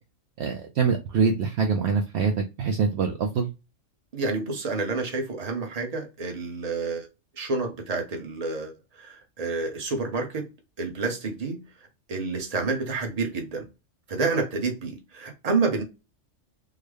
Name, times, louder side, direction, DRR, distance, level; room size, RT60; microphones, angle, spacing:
voice 1, 0.4-3.5, right 5 dB, 65° right, 0.8 m, -24 dB
voice 2, 4.1-7.1 7.4-10.5 10.8-11.6 12.1-13.7 14.1-15.8, right 3 dB, 35° right, 0.9 m, -29 dB
3.8 x 2.1 x 3.2 m
omnidirectional pair, 1.3 m